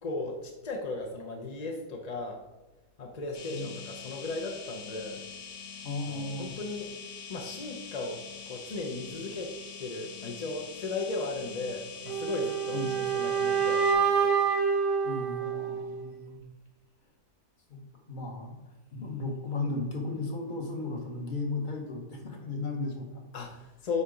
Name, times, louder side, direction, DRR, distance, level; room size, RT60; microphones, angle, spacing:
voice 1, 0.0-2.4 3.0-5.2 6.1-6.9 7.3-14.3 23.3-24.0, left 3 dB, 50° left, 1 dB, 0.4 m, -36 dB
sound 1, 3.3-13.9, left 6 dB, 80° left, 2.1 m, -44 dB
voice 2, 5.8-6.5 12.7-13.1 15.0-16.4 17.7-18.6 18.9-23.2, left 3 dB, 35° left, 2 dB, 0.9 m, -35 dB
sound 2, 12.1-16.1, right 6 dB, 80° right, 1.4 m, -27 dB
8.3 x 2.9 x 5.1 m, 1.1 s
omnidirectional pair, 1.8 m